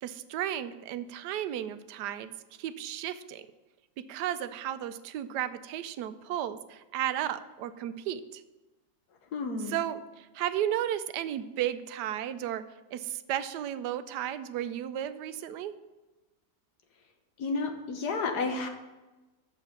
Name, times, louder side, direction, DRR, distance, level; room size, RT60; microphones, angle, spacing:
voice 1, 0.0-2.3 2.6-3.4 4.0-8.4 9.7-12.6 12.9-15.8, right 11 dB, 85° right, 13 dB, 1.2 m, -34 dB
voice 2, 9.3-9.8 17.4-18.7, left 3 dB, 75° left, 5 dB, 1.6 m, -31 dB
7.1 x 6.7 x 6.9 m, 1.1 s
omnidirectional pair, 1.7 m